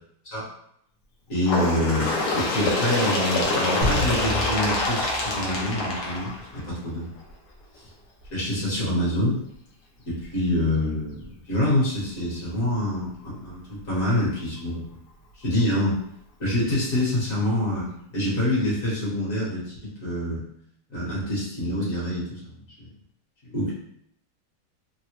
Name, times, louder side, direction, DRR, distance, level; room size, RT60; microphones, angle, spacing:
voice 1, 1.3-7.1 7.7-7.8 8.3-9.4 10.0-15.0 15.3-16.0 16.4-20.4 20.9-22.9 23.5-23.7, left 1 dB, 55° left, -7 dB, 1.5 m, -26 dB
Bird, 1.4-6.9 7.8-7.9 8.2-8.3 9.2-9.3 10.2-10.3 11.2-11.3, left 2 dB, 70° left, 1.2 m, -26 dB
sound 1, 3.8-6.6, left 1 dB, 50° right, 0.7 m, -32 dB
3.4 x 2.1 x 2.9 m, 0.73 s
omnidirectional pair, 1.8 m